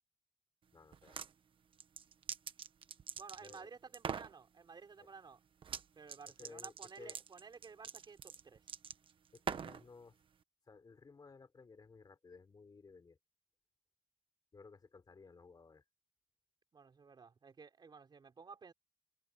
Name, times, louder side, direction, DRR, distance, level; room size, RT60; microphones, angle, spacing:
voice 1, 0.7-1.2 3.4-3.7 5.0-5.1 6.4-7.2 9.3-10.1 10.7-13.2 14.5-15.8, left 4 dB, 45° left, 4.0 m, -57 dB
sound 1, 0.9-1.3 1.8-3.6 3.9-4.3 5.6-5.8 6.1-9.8, right 7 dB, 65° right, 1.3 m, -43 dB
voice 2, 3.2-5.4 5.9-8.6 16.7-18.7, right 5 dB, 50° right, 4.5 m, -54 dB
cardioid pair, 75°, 10 cm